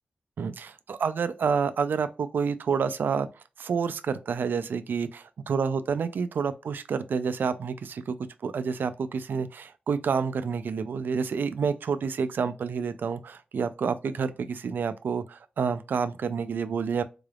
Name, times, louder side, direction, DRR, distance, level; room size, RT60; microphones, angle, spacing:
voice 1, 0.4-3.3 3.6-8.2 8.4-17.0, right 6 dB, 80° right, 0.3 m, -29 dB
3.8 x 3.3 x 2.3 m
wide cardioid pair, 85°, 3 cm